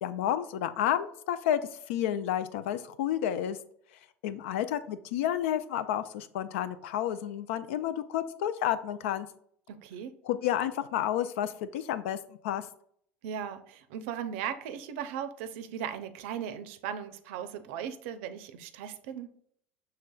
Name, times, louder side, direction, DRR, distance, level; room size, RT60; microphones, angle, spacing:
voice 1, 0.0-1.6 1.9-3.6 4.2-9.3 10.2-12.2 12.4-12.6, left 11 dB, 70° left, 13 dB, 0.4 m, -30 dB
voice 2, 9.7-10.1 13.2-19.3, right 8 dB, 70° right, 10 dB, 0.5 m, -37 dB
6.5 x 3.3 x 2.3 m, 0.65 s
hypercardioid pair, 75°, 7 cm